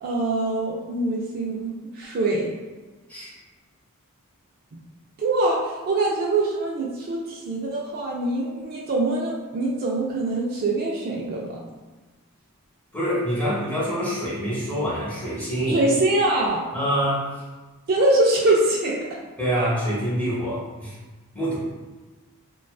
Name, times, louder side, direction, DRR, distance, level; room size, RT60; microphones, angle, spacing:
voice 1, 0.0-2.5 5.2-11.7 15.7-16.6 17.9-19.1, right 2 dB, 40° right, -3 dB, 0.3 m, -23 dB
voice 2, 12.9-15.8 16.7-17.2 19.4-20.9 21.3-21.6, equal, 5° left, -9 dB, 0.8 m, -25 dB
2.4 x 2.2 x 2.2 m, 1.3 s
head